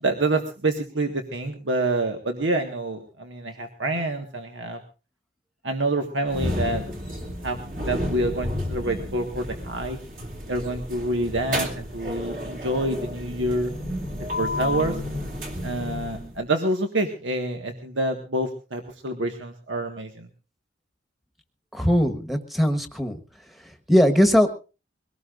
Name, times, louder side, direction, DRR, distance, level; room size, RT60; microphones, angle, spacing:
voice 1, 0.0-4.8 5.6-6.8 7.4-7.6 7.8-10.0 10.5-13.7 14.4-15.0 15.6-20.3, right 2 dB, 75° right, 4 dB, 1.7 m, -27 dB
sound 1, 6.3-16.4, left 1 dB, 45° right, 3.0 m, -31 dB
voice 2, 21.7-23.2 23.9-24.5, equal, ahead, 7 dB, 1.4 m, -19 dB
22.5 x 18.0 x 2.6 m, 0.33 s
head